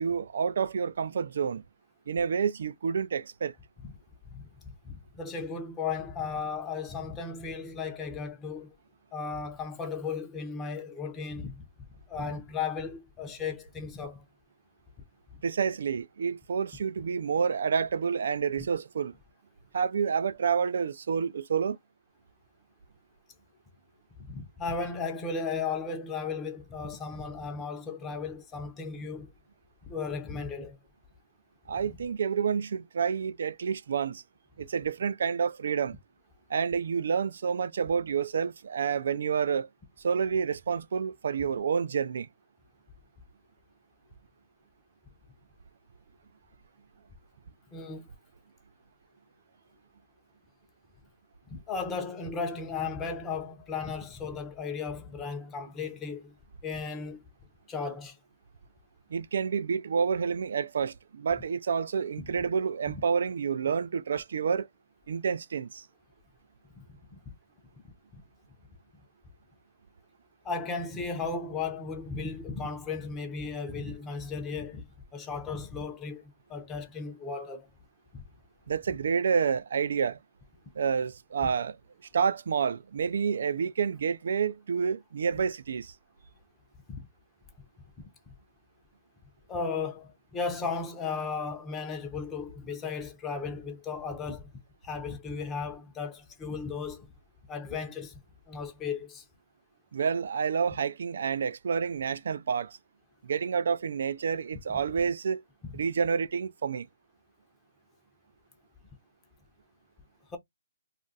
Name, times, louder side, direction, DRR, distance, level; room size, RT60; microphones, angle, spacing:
voice 1, 0.0-1.6 2.1-3.5 15.4-19.1 19.7-21.8 31.7-34.2 34.6-36.0 36.5-39.7 40.0-42.3 59.1-64.7 65.1-65.8 78.7-80.2 80.8-81.8 82.1-85.9 99.9-102.8 103.2-105.4 105.7-106.9, right 6 dB, 60° right, 0.3 m, -29 dB
voice 2, 4.8-8.7 9.1-11.6 12.1-14.2 24.2-29.3 29.9-30.8 47.7-48.1 51.5-56.3 56.6-57.2 57.7-58.2 62.2-62.3 66.8-67.3 68.1-68.2 70.4-77.7 78.1-78.2 86.9-87.1 88.0-88.1 89.5-94.5 94.8-97.1 97.5-98.2 98.5-99.2 105.6-105.7 110.3-110.4, left 5 dB, 10° left, 0.7 m, -35 dB
2.4 x 2.2 x 3.9 m
hypercardioid pair, 165°, 0 cm